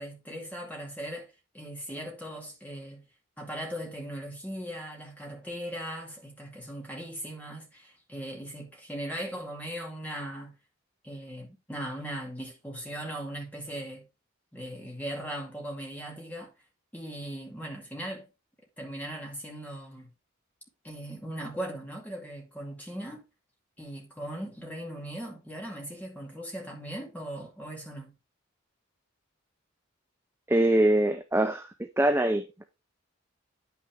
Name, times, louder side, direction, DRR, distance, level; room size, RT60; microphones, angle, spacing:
voice 1, 0.0-3.0 3.4-10.5 11.0-14.0 14.5-16.5 16.9-18.3 18.8-20.1 20.8-23.2 23.8-28.1, right 1 dB, 10° left, 2.3 m, -39 dB
voice 2, 30.5-32.6, right 1 dB, 10° right, 0.5 m, -24 dB
9.6 x 5.9 x 3.5 m
head